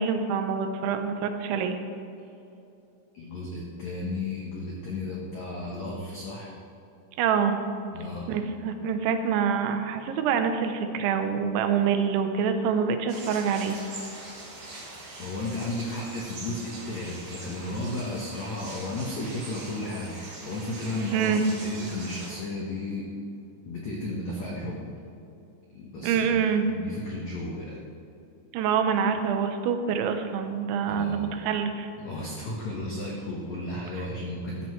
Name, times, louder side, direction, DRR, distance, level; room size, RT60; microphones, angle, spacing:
voice 1, 0.0-1.8 7.2-7.6 8.3-13.8 21.1-21.4 26.0-26.6 28.5-31.9, right 6 dB, 85° right, 7 dB, 3.2 m, -26 dB
voice 2, 3.1-6.5 7.9-8.3 15.2-20.2 20.5-23.1 23.6-24.9 25.7-26.3 26.6-27.8 30.9-31.3 32.0-34.7, left 2 dB, 80° left, -3 dB, 1.6 m, -34 dB
sound 1, 13.1-22.3, right 2 dB, 45° right, 2.9 m, -42 dB
14.0 x 13.0 x 3.2 m, 2.8 s
omnidirectional pair, 5.3 m